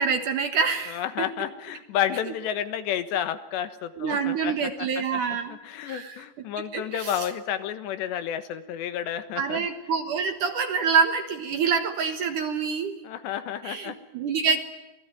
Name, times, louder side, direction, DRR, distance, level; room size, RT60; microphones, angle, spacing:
voice 1, 0.0-1.0 4.0-5.6 5.9-6.2 6.7-7.2 9.4-12.9 13.6-14.6, right 5 dB, 60° right, 7 dB, 2.4 m, -26 dB
voice 2, 0.9-5.4 5.6-9.7 13.0-14.0, left 10 dB, 75° left, 10 dB, 3.5 m, -31 dB
27.0 x 19.0 x 9.2 m, 1.0 s
omnidirectional pair, 5.1 m